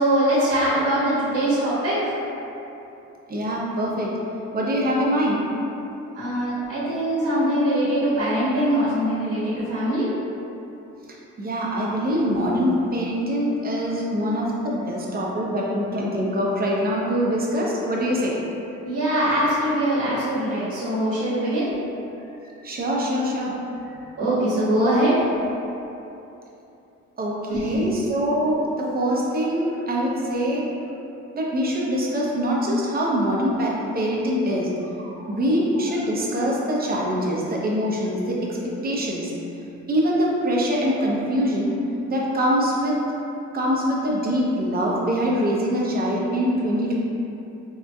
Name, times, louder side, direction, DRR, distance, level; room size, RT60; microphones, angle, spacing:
voice 1, 0.0-2.1 6.1-10.1 18.9-21.7 24.2-25.2 27.5-27.8 35.0-35.3, right 1 dB, 55° right, -10 dB, 1.0 m, -22 dB
voice 2, 3.3-4.1 4.5-5.4 11.4-18.3 22.6-23.5 27.2-30.7 31.3-34.7 35.3-39.3 39.9-41.7 42.1-43.0 43.5-47.0, equal, 30° right, -4 dB, 0.6 m, -24 dB
3.6 x 2.7 x 2.2 m, 2.9 s
cardioid pair, 90°, 30 cm